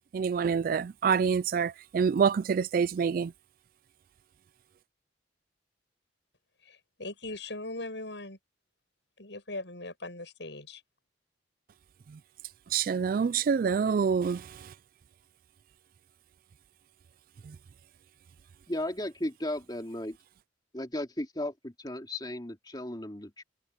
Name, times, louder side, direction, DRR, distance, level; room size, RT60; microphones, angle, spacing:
voice 1, 0.1-3.3 12.1-12.2 12.7-14.7 17.4-17.6, right 6 dB, 50° right, 0.3 m, -27 dB
voice 2, 6.6-8.4 9.2-10.8, left 2 dB, 75° left, 7.6 m, -40 dB
voice 3, 18.7-20.2 20.7-23.4, left 1 dB, 25° left, 2.7 m, -35 dB
head